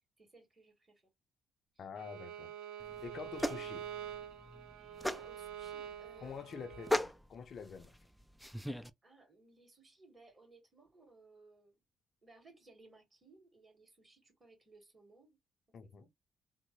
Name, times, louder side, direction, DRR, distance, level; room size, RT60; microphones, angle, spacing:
voice 1, 0.2-1.1 1.7-1.9 5.0-6.6 9.0-11.8 12.2-15.4 15.8-16.1, right 3 dB, 25° right, 2.3 m, -62 dB
voice 2, 1.8-2.5 3.0-3.8 6.2-7.9 15.7-16.1, left 6 dB, 55° left, 0.5 m, -47 dB
Bowed string instrument, 2.0-7.0, right 9 dB, 90° right, 0.4 m, -46 dB
sound 1, 2.8-8.9, left 1 dB, ahead, 0.4 m, -39 dB
3.6 x 2.0 x 3.1 m
cardioid pair, 90°, 0 cm